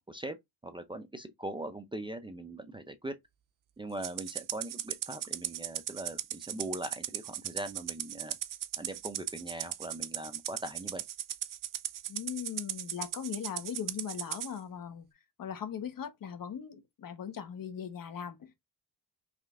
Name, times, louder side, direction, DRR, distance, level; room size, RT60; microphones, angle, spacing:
voice 1, 0.6-3.2 3.8-8.4 8.8-11.0, right 1 dB, 10° right, 0.5 m, -41 dB
Rattle (instrument), 4.0-14.5, right 12 dB, 50° right, 0.6 m, -37 dB
voice 2, 12.1-15.1 15.4-18.5, left 8 dB, 50° left, 1.1 m, -39 dB
5.0 x 3.3 x 2.5 m
cardioid pair, 95°, 41 cm